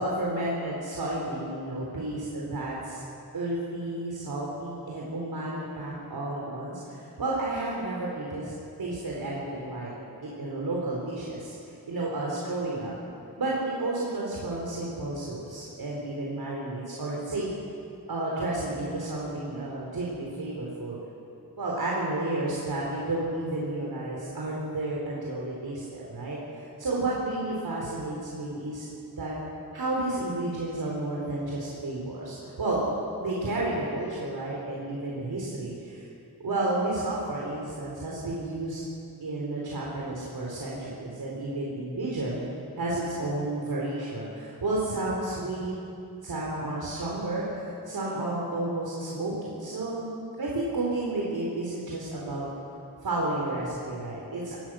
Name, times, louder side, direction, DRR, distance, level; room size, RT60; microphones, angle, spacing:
voice 1, 0.0-3.0 3.3-8.5 8.8-9.9 10.2-11.5 11.9-12.9 13.4-17.5 18.1-21.0 21.6-28.9 29.2-29.3 29.7-32.9 33.2-36.0 36.4-38.8 39.2-42.4 42.8-45.7 46.2-50.1 50.4-52.5 53.0-54.6, right 2 dB, 70° right, -4 dB, 4.4 m, -31 dB
24.5 x 20.0 x 6.5 m, 2.6 s
wide cardioid pair, 130°, 38 cm